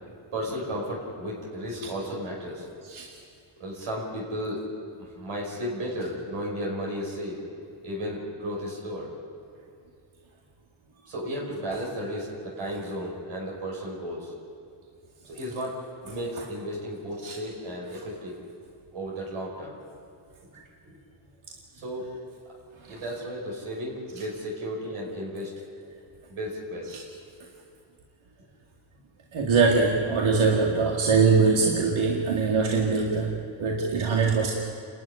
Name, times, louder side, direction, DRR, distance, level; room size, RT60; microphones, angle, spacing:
voice 1, 0.3-2.7 3.6-4.6 5.0-7.4 7.8-9.1 11.1-14.3 15.2-18.3 18.9-19.8 20.8-21.0 21.8-22.0 22.9-25.5 26.3-26.9, equal, 85° right, -3 dB, 5.5 m, -34 dB
voice 2, 29.3-34.5, right 4 dB, 70° right, -1 dB, 2.3 m, -23 dB
29.0 x 12.5 x 10.0 m, 2.4 s
cardioid pair, 105°, 49 cm